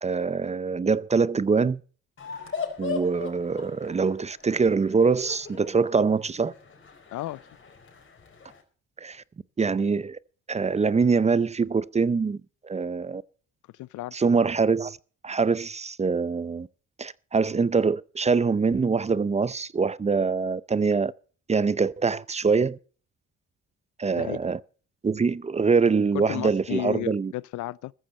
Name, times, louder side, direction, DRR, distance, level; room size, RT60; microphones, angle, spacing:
voice 1, 0.0-1.8 2.8-6.5 9.0-9.2 9.6-10.2 10.5-12.4 12.6-13.2 14.1-15.0 15.2-16.7 17.0-21.1 21.5-22.8 24.0-24.6 25.0-27.3, right 5 dB, 20° right, 0.5 m, -24 dB
sound 1, 2.2-8.6, left 5 dB, 40° left, 4.6 m, -39 dB
voice 2, 13.8-14.1 24.2-24.4 26.1-27.9, left 16 dB, 75° left, 0.5 m, -33 dB
14.5 x 14.0 x 4.2 m
cardioid pair, 90°, 30 cm